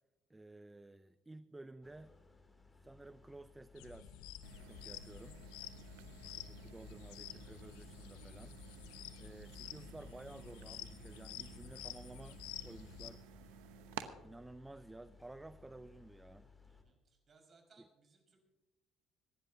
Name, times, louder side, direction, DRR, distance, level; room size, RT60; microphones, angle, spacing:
voice 1, 0.3-2.2 2.8-4.2 4.5-5.4 6.3-8.6 9.2-13.3 14.1-16.5, right 2 dB, 15° right, 14 dB, 0.5 m, -54 dB
sound 1, 1.8-16.8, left 4 dB, 20° left, 2.8 m, -63 dB
sound 2, 3.7-13.1, left 9 dB, 85° left, 0.9 m, -50 dB
sound 3, 4.4-14.1, right 10 dB, 85° right, 0.9 m, -54 dB
voice 2, 16.7-18.4, right 4 dB, 45° right, 3 dB, 5.2 m, -68 dB
26.0 x 11.0 x 2.8 m, 1.1 s
supercardioid pair, 70°, 0 cm